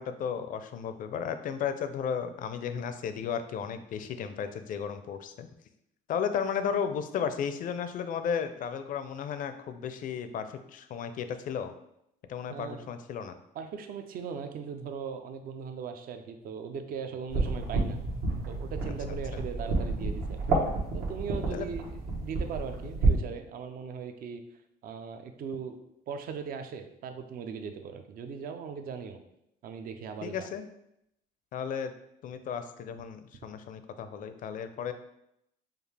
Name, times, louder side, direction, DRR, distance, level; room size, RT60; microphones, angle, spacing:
voice 1, 0.0-5.5 6.1-11.7 12.3-13.3 21.5-21.7 30.2-30.6 31.5-31.9 32.2-34.9, left 7 dB, 55° left, 9 dB, 0.4 m, -34 dB
voice 2, 12.5-12.9 13.5-18.0 18.5-21.8 22.2-24.4 24.8-25.8 26.1-29.2 29.6-30.5, right 6 dB, 60° right, 7 dB, 0.5 m, -39 dB
sound 1, 17.3-23.2, right 3 dB, 75° right, 1.2 m, -30 dB
5.1 x 2.4 x 3.3 m, 0.79 s
cardioid pair, 110°, 17 cm